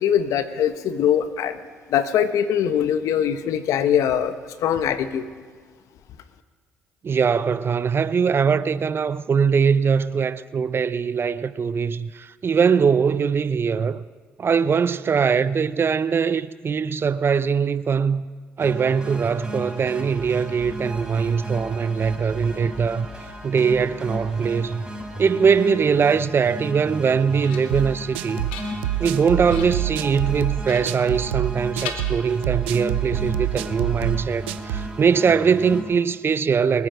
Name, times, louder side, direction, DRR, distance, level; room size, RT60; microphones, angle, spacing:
voice 1, 0.0-1.6 1.9-4.3 4.6-5.2, left 9 dB, 70° left, 1.1 m, -22 dB
voice 2, 7.0-14.0 14.4-18.3 18.6-23.1 23.4-24.8 25.2-28.5 29.0-36.9, right 6 dB, 40° right, 0.7 m, -21 dB
sound 1, 18.6-35.8, equal, 10° right, 5.6 m, -36 dB
sound 2, 27.3-27.9 28.3-29.1 29.5-29.9 30.6-31.5 31.8-32.7, left 6 dB, 90° left, 1.4 m, -38 dB
sound 3, 27.7-34.9, right 14 dB, 90° right, 0.4 m, -27 dB
27.5 x 9.7 x 5.1 m
hypercardioid pair, 55°, 6 cm